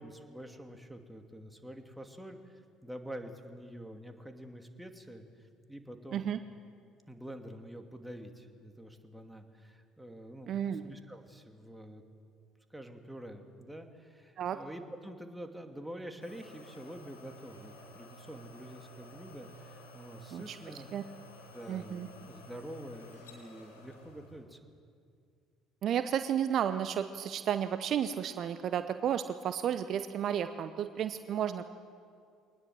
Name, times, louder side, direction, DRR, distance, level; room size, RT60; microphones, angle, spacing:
voice 1, 0.0-6.3 7.1-12.0 12.7-20.9 21.5-24.6, right 1 dB, 5° right, 5 dB, 2.5 m, -47 dB
voice 2, 10.5-10.8 14.4-14.6 20.3-20.6 20.9-21.0 21.7-22.1 25.8-31.7, right 9 dB, 50° right, 11 dB, 0.7 m, -32 dB
sound 1, 16.2-24.4, left 1 dB, 80° left, 3.0 m, -52 dB
23.5 x 19.5 x 7.6 m, 2.3 s
figure-of-eight pair, 55°, 0 cm